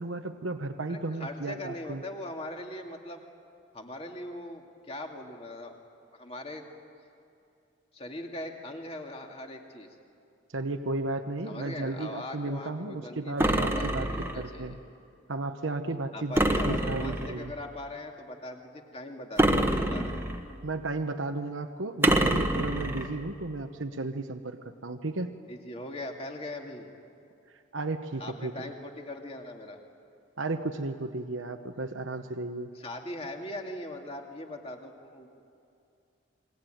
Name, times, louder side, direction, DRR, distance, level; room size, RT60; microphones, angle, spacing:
voice 1, 0.0-2.0 10.5-14.8 15.3-16.3 16.6-17.5 20.6-25.4 27.7-28.7 30.4-32.7, right 2 dB, 80° right, 6 dB, 1.1 m, -34 dB
voice 2, 0.9-3.2 3.7-5.7 6.1-6.7 7.9-10.0 11.4-14.8 16.1-20.2 25.5-26.9 28.2-29.8 32.7-35.4, left 1 dB, 30° left, 2 dB, 2.5 m, -40 dB
sound 1, 13.4-14.5 16.4-17.4 19.4-20.5 22.0-23.1, right 1 dB, 10° right, 1.4 m, -26 dB
29.5 x 22.0 x 9.2 m, 2.6 s
head